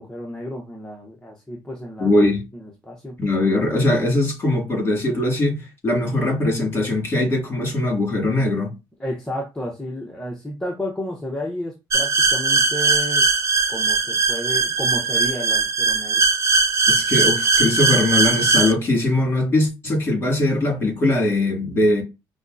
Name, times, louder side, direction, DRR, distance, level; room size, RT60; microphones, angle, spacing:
voice 1, 0.0-2.1 2.5-3.2 9.0-13.3 13.7-16.2, left 1 dB, 10° left, 0.8 m, -32 dB
voice 2, 2.0-2.4 3.2-8.7 16.9-22.0, left 1 dB, 25° left, 2.1 m, -21 dB
sound 1, 11.9-18.7, right 4 dB, 35° right, 0.6 m, -19 dB
5.3 x 2.2 x 2.6 m
cardioid pair, 120°, 8 cm